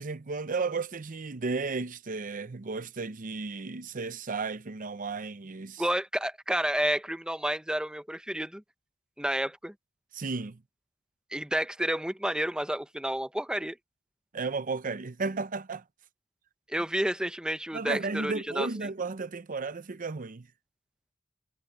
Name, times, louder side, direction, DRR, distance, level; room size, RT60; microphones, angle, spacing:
voice 1, 0.0-5.8 10.1-10.6 14.3-15.8 17.7-20.5, right 4 dB, 40° right, 0.7 m, -34 dB
voice 2, 5.8-8.6 9.2-9.7 11.3-13.8 16.7-18.9, right 1 dB, 5° right, 0.9 m, -30 dB
head